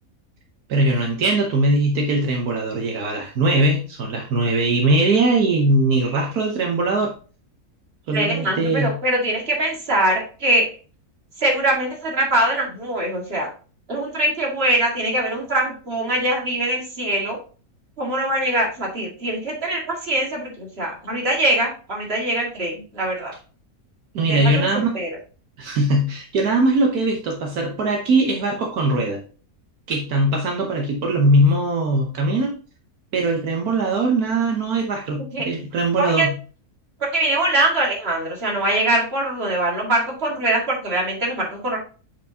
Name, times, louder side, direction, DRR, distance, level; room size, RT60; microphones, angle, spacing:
voice 1, 0.7-7.1 8.1-8.9 24.1-24.9 25.6-29.2 29.9-32.5 33.1-36.3, right 2 dB, 75° right, 1 dB, 1.5 m, -20 dB
voice 2, 8.1-10.7 11.4-13.5 13.9-17.4 18.0-23.3 24.2-25.1 35.3-35.5 36.0-36.3 37.0-41.8, right 1 dB, 40° right, -2 dB, 2.3 m, -22 dB
8.0 x 4.4 x 2.8 m, 0.37 s
omnidirectional pair, 1.6 m